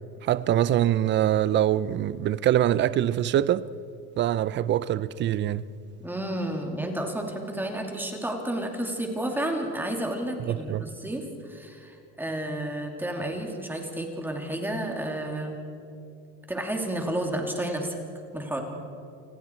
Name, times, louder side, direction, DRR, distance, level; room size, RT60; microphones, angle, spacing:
voice 1, 0.2-3.7 4.2-5.6 10.5-10.9, right 11 dB, 35° right, 0.5 m, -24 dB
voice 2, 6.0-15.6 16.5-18.0 18.3-18.6, right 1 dB, 5° right, 2.6 m, -31 dB
29.0 x 20.0 x 4.5 m
cardioid pair, 150°, 32 cm